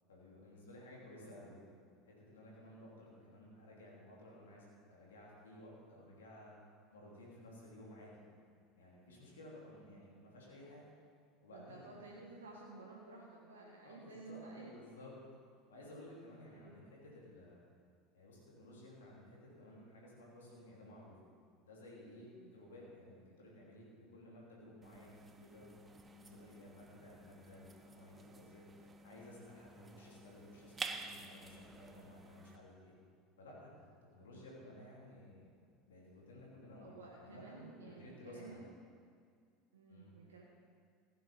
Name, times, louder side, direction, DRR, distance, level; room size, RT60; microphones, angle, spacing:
voice 1, 0.1-1.6 2.1-6.6 6.9-8.2 8.8-10.9 11.4-12.1 13.8-15.2 15.7-17.6 18.1-21.2 21.6-25.8 26.0-32.9 33.4-33.9 34.1-35.5 35.9-38.6 39.9-40.1, left 1 dB, 75° left, -4 dB, 3.2 m, -55 dB
voice 2, 11.5-14.7 16.5-17.0 22.3-22.5 26.4-26.6 34.2-34.4 36.8-38.6 39.7-40.4, right 3 dB, 80° right, -3 dB, 1.4 m, -54 dB
sound 1, 24.8-32.6, right 3 dB, 20° right, 0.9 m, -51 dB
15.5 x 8.5 x 5.4 m, 2.2 s
figure-of-eight pair, 75°, 0 cm